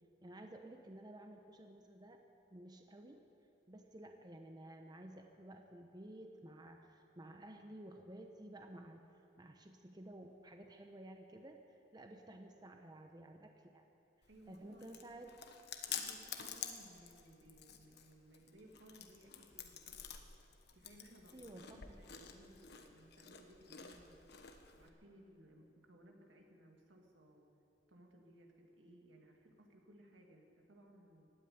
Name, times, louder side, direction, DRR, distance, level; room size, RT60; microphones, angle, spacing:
voice 1, 0.2-2.2 2.5-3.2 3.7-9.0 9.4-13.8 14.5-15.3 21.3-21.8, right 1 dB, 20° right, 4 dB, 0.8 m, -53 dB
Chewing mastication, 14.2-24.9, left 8 dB, 60° left, 1.1 m, -50 dB
voice 2, 14.3-15.1 15.9-20.2 20.7-24.2 24.7-27.5 27.9-31.3, right 1 dB, 75° right, 1 dB, 2.2 m, -62 dB
16.0 x 9.2 x 9.6 m, 2.8 s
head